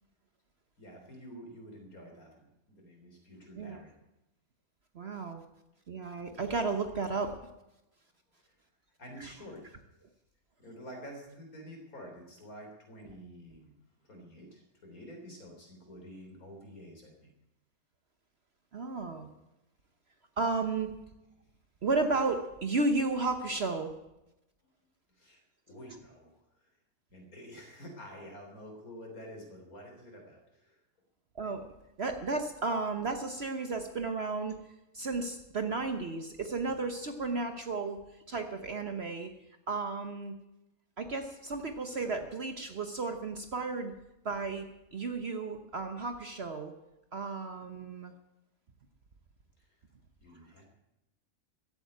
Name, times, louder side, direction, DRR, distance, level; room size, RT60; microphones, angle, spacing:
voice 1, 0.8-3.9 8.4-8.6 9.0-9.6 10.6-13.7 14.0-17.3 25.2-26.3 27.1-30.8 49.6-49.7 50.2-50.7, equal, 75° left, 2 dB, 4.1 m, -49 dB
voice 2, 4.9-5.4 5.9-7.3 9.2-9.3 18.7-19.3 20.4-20.9 21.8-23.9 31.4-31.6 32.0-34.6 34.9-38.0 38.3-39.3 39.7-40.3 41.0-43.9 44.2-44.6 44.9-46.7 47.1-48.1, right 3 dB, 50° right, 7 dB, 1.2 m, -33 dB
14.5 x 8.7 x 9.4 m, 0.92 s
omnidirectional pair, 1.5 m